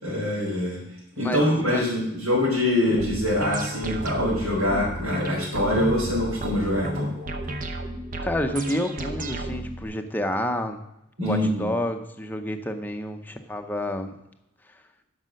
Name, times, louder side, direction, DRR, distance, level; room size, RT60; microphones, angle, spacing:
voice 1, 0.0-0.8 1.2-7.1 11.2-11.7, left 1 dB, 85° right, -8 dB, 4.1 m, -24 dB
voice 2, 1.2-1.9 8.2-10.8 11.2-14.2, left 1 dB, 10° left, 6 dB, 0.7 m, -29 dB
sound 1, 3.0-9.8, right 1 dB, 40° right, 0.8 m, -32 dB
11.5 x 5.5 x 6.4 m, 0.87 s
head